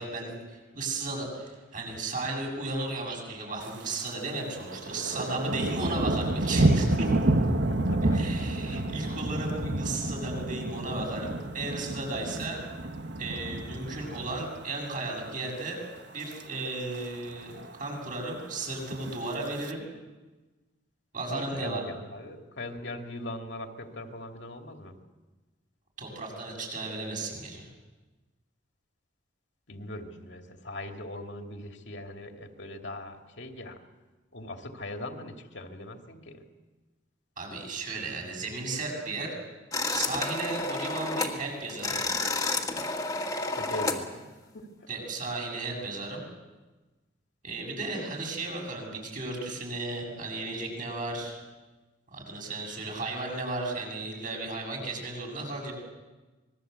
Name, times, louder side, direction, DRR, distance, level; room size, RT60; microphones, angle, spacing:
voice 1, 0.0-7.5 8.0-12.6 13.2-15.8 16.1-17.5 17.8-19.8 21.1-21.8 26.0-27.7 37.4-39.4 39.9-42.0 44.9-46.2 47.4-51.4 52.1-55.7, right 2 dB, 45° right, 0 dB, 7.8 m, -35 dB
Thunder, 3.6-4.2 4.5-14.8 15.2-15.5 16.0-16.4 16.7-16.8 17.0-17.1 17.4-18.0 18.8-19.7, right 1 dB, 60° right, 1.3 m, -29 dB
voice 2, 7.4-8.2 8.6-9.3 21.3-25.0 29.7-33.8 34.3-36.4 43.5-44.3 44.5-44.9, left 1 dB, 65° left, 4 dB, 2.5 m, -41 dB
sound 1, 39.7-41.4 41.7-44.0, left 3 dB, 20° left, 2.1 m, -30 dB
26.5 x 21.0 x 8.1 m, 1.2 s
head